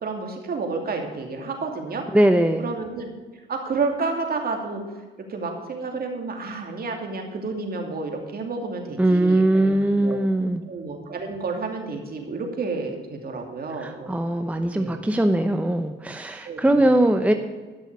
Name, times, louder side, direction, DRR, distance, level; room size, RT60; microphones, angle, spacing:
voice 1, 0.0-2.0 2.6-3.1 3.5-4.8 5.3-10.2 10.7-14.1 14.7-15.1 16.4-16.6, right 4 dB, 50° right, 3 dB, 2.7 m, -30 dB
voice 2, 2.1-2.7 9.0-10.6 13.7-17.3, right 1 dB, 5° right, 7 dB, 0.8 m, -21 dB
12.0 x 6.4 x 8.5 m, 1.3 s
cardioid pair, 90°, 20 cm